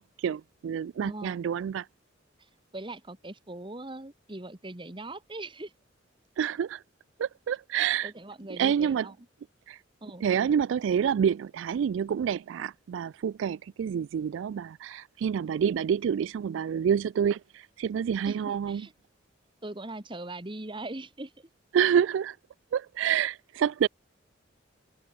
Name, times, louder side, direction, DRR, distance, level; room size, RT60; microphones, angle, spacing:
voice 1, 0.0-1.9 6.4-6.8 7.2-8.1 8.5-9.1 9.7-9.8 10.2-18.9 21.7-22.4 22.7-23.9, right 8 dB, 75° right, 0.3 m, -28 dB
voice 2, 1.0-1.5 2.4-5.7 8.0-9.1 10.0-10.2 18.3-18.9 19.6-21.5, right 2 dB, 25° right, 1.5 m, -41 dB
head